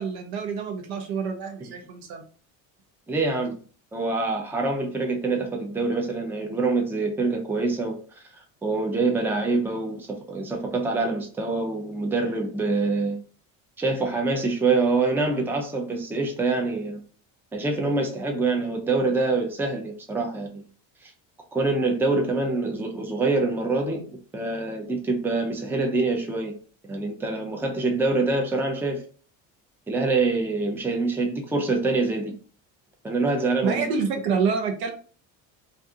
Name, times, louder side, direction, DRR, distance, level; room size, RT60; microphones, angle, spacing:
voice 1, 0.0-2.2 33.6-34.9, right 5 dB, 70° right, 0.8 m, -27 dB
voice 2, 3.1-3.6 3.9-8.0 8.6-13.2 13.8-17.0 17.5-20.6 21.0-21.1 21.5-24.1 24.3-26.5 26.9-29.0 29.9-32.3 33.0-33.8, right 3 dB, 5° right, 0.5 m, -25 dB
2.6 x 2.2 x 2.7 m
supercardioid pair, 100°, 39 cm